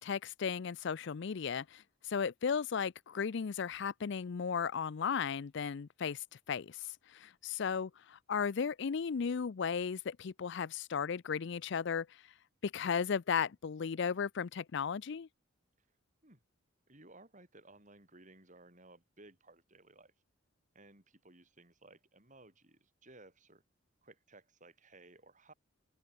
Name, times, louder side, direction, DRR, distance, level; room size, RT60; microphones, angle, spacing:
voice 1, 0.0-7.9 8.3-12.1 12.6-15.3, left 6 dB, 55° left, 0.4 m, -35 dB
voice 2, 16.9-20.1 20.7-23.6 24.0-25.5, right 2 dB, 35° right, 7.3 m, -59 dB
head